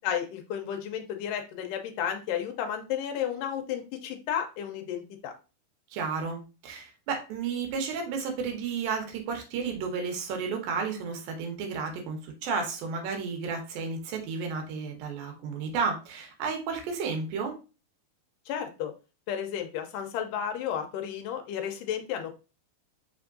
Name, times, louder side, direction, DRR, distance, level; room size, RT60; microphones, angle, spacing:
voice 1, 0.0-5.3 18.5-18.9 19.3-22.3, left 9 dB, 80° left, 5 dB, 2.0 m, -32 dB
voice 2, 5.9-17.6, right 5 dB, 75° right, 3 dB, 2.7 m, -32 dB
5.3 x 3.4 x 2.5 m, 0.31 s
omnidirectional pair, 4.2 m